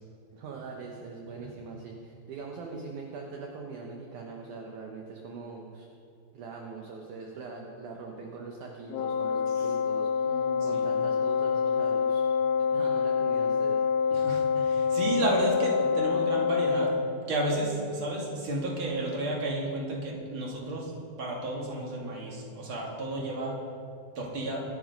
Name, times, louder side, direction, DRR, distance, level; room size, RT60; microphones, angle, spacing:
voice 1, 0.3-5.9 6.3-12.3 12.7-13.8, right 4 dB, 70° right, 0 dB, 2.0 m, -42 dB
Wind instrument woodwind instrument, 8.9-17.1, left 6 dB, 90° left, 2.8 m, -26 dB
voice 2, 10.2-10.8 14.1-16.9 17.3-23.6 24.2-24.6, right 2 dB, 35° right, -3 dB, 2.7 m, -32 dB
23.5 x 8.1 x 5.3 m, 2.5 s
omnidirectional pair, 4.8 m